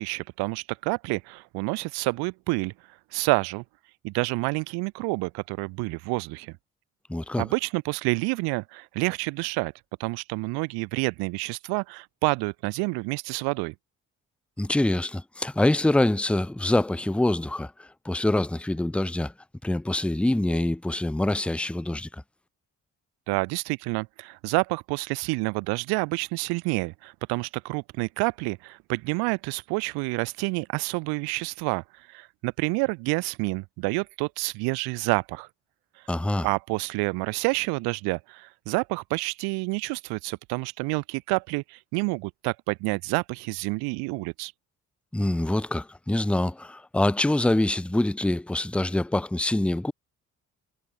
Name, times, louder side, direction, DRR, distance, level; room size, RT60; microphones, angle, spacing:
voice 1, 0.0-2.7 3.1-3.6 4.0-6.5 7.4-9.7 10.0-13.7 23.3-35.5 36.4-44.5, right 27 dB, 70° right, 0.7 m, -28 dB
voice 2, 7.1-7.4 14.6-19.3 19.6-22.1 36.1-36.5 45.1-49.9, left 1 dB, 5° left, 0.7 m, -25 dB
hypercardioid pair, 40°, 40 cm